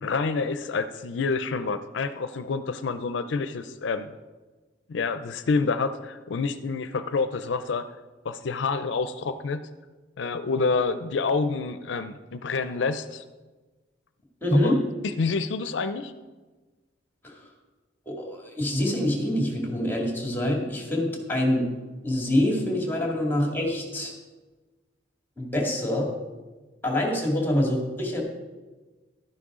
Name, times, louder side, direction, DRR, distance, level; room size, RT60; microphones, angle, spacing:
voice 1, 0.0-4.1 4.9-7.8 8.2-9.7 10.2-13.2 14.5-14.7 15.0-16.1, left 4 dB, 80° left, 11 dB, 0.5 m, -28 dB
voice 2, 14.4-14.8 17.2-17.3 18.1-21.7 22.0-24.1 25.4-26.1 26.8-28.2, left 1 dB, 10° left, 0 dB, 2.2 m, -25 dB
12.0 x 10.0 x 3.7 m, 1.3 s
head